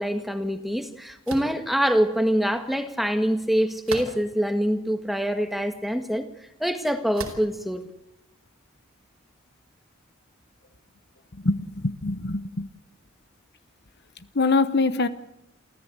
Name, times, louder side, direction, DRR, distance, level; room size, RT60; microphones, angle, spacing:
voice 1, 0.0-6.3 6.6-7.8, equal, ahead, 1.7 m, -25 dB
sound 1, 1.3-1.6 3.9-4.4 5.1-5.2 7.1-7.6, right 3 dB, 85° right, 4.7 m, -36 dB
voice 2, 11.4-12.7 14.3-15.1, left 3 dB, 50° left, 1.1 m, -23 dB
28.5 x 14.5 x 8.1 m
head